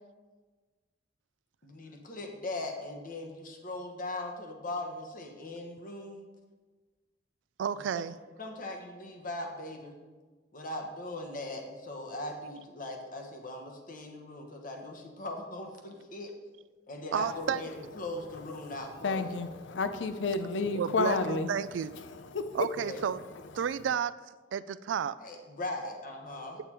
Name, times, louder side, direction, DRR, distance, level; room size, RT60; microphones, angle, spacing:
voice 1, 1.6-6.2 7.7-8.0 8.4-10.0 10.5-16.3 16.9-19.4 22.7-23.0 25.2-26.6, left 2 dB, 50° left, 3 dB, 1.2 m, -40 dB
voice 2, 7.6-8.2 17.1-17.6 20.7-21.9 22.5-23.2 23.5-24.1 24.5-25.1, right 8 dB, 85° right, 15 dB, 0.3 m, -31 dB
voice 3, 18.6-21.5 22.0-22.6, left 3 dB, 80° left, 9 dB, 0.5 m, -31 dB
8.3 x 6.8 x 4.4 m, 1.3 s
head